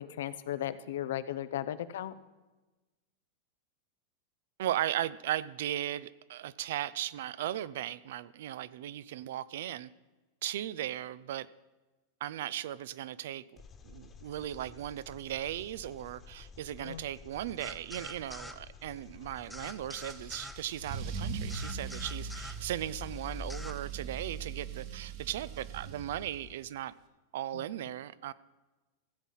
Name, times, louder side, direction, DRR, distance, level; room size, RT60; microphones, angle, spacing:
voice 1, 0.0-2.1 16.8-17.0, left 11 dB, 80° left, 14 dB, 0.6 m, -36 dB
voice 2, 4.6-9.9 10.4-11.5 12.2-13.4 13.8-26.9 27.3-28.3, right 12 dB, 75° right, 18 dB, 0.4 m, -37 dB
Engine, 13.6-23.5, left 5 dB, 25° left, 1.3 m, -52 dB
sound 1, 17.6-18.6 19.5-20.6 21.5-22.6 23.5-23.8, left 1 dB, 5° left, 0.7 m, -45 dB
Car / Engine starting / Accelerating revving vroom, 20.1-26.6, right 4 dB, 55° right, 1.6 m, -40 dB
15.0 x 7.4 x 5.6 m, 1.2 s
hypercardioid pair, 120°, 0 cm